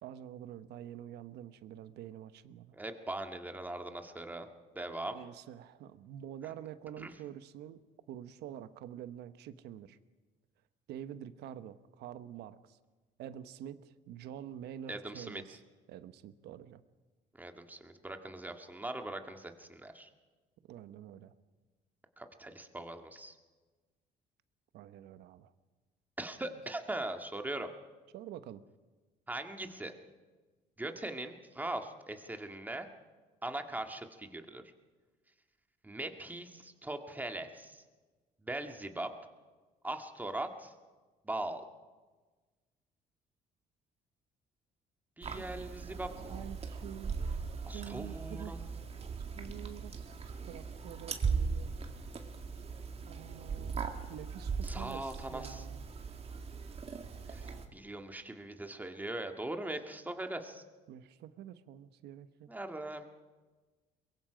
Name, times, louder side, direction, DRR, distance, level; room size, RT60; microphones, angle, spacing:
voice 1, 0.0-2.8 5.1-7.8 8.1-10.0 10.9-12.8 13.2-15.6 15.9-16.8 20.6-21.3 24.7-25.5 28.1-28.6 45.3-45.5 46.3-47.2 47.7-48.6 49.3-51.7 53.1-55.8 60.9-62.5, right 10 dB, 80° right, 13 dB, 1.0 m, -47 dB
voice 2, 2.7-4.5 4.8-5.2 7.0-7.1 14.9-15.4 17.4-20.1 22.2-23.4 26.2-27.7 29.3-29.9 30.8-32.9 33.4-34.6 35.8-37.8 38.4-39.1 39.8-40.7 41.2-41.6 45.2-46.1 47.7-48.6 54.6-55.7 57.3-60.6 62.5-63.1, right 1 dB, 10° right, 5 dB, 1.8 m, -40 dB
sound 1, 45.2-57.7, right 5 dB, 35° right, 2.1 m, -39 dB
23.0 x 22.0 x 5.1 m, 1.3 s
cardioid pair, 110°, 17 cm